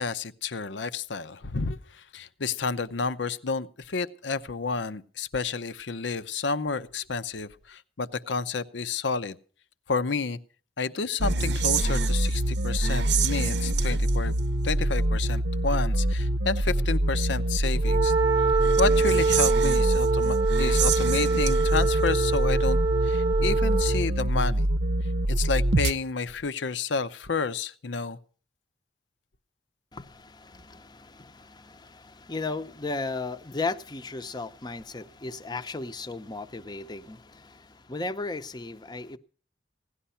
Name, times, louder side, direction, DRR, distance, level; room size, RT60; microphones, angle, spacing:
voice 1, 0.0-9.4 9.9-10.4 10.8-14.4 14.6-18.1 18.8-24.7 25.3-28.2, left 4 dB, 85° left, 0.7 m, -30 dB
sound 1, 11.2-25.9, right 1 dB, 70° right, 0.7 m, -25 dB
Wind instrument woodwind instrument, 17.8-24.1, right 4 dB, 25° right, 0.7 m, -25 dB
voice 2, 29.9-39.2, left 3 dB, 25° left, 0.7 m, -35 dB
17.0 x 11.5 x 5.6 m
head